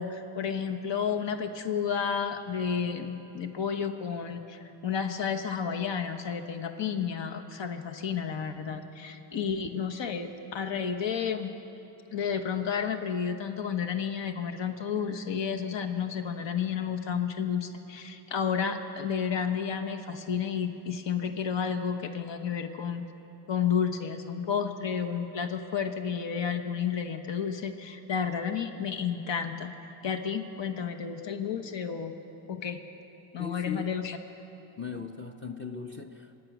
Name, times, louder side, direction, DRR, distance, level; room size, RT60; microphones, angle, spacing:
voice 1, 0.0-11.5 12.1-23.0 23.5-29.7 30.0-32.1 32.5-32.8 33.3-34.2, left 7 dB, 65° left, 7 dB, 1.2 m, -31 dB
voice 2, 33.4-34.0 34.8-36.4, left 5 dB, 25° left, 6 dB, 0.8 m, -39 dB
25.5 x 9.2 x 6.1 m, 2.9 s
supercardioid pair, 50°, 48 cm